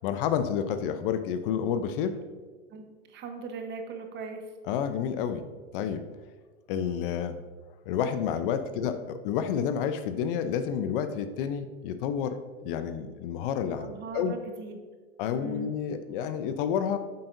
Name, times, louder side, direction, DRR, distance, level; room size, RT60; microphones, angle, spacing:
voice 1, 0.0-2.2 4.7-5.5 5.7-6.0 6.7-7.4 7.9-14.3 15.2-17.0, left 8 dB, 50° left, 10 dB, 0.7 m, -30 dB
voice 2, 2.7-4.4 8.7-8.9 13.8-14.8 15.3-15.7, right 4 dB, 30° right, 5 dB, 1.1 m, -39 dB
9.5 x 7.9 x 2.6 m, 1.4 s
hypercardioid pair, 120°, 34 cm